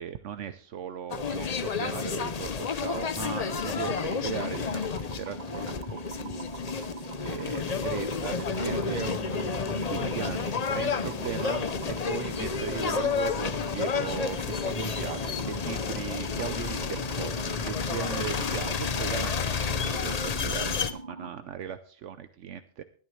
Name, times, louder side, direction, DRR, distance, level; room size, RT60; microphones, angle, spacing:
voice 1, 0.0-5.8 6.1-6.5 6.8-8.7 9.9-22.8, right 9 dB, 75° right, 10 dB, 1.0 m, -38 dB
sound 1, 1.1-20.9, left 6 dB, 40° left, 0.7 m, -31 dB
sound 2, 3.5-21.3, right 3 dB, 50° right, 1.6 m, -42 dB
sound 3, 8.1-15.7, right 1 dB, ahead, 1.2 m, -48 dB
voice 2, 8.6-10.6 17.5-17.9, right 4 dB, 35° right, 7 dB, 1.5 m, -39 dB
21.0 x 9.4 x 3.2 m, 0.43 s
omnidirectional pair, 1.3 m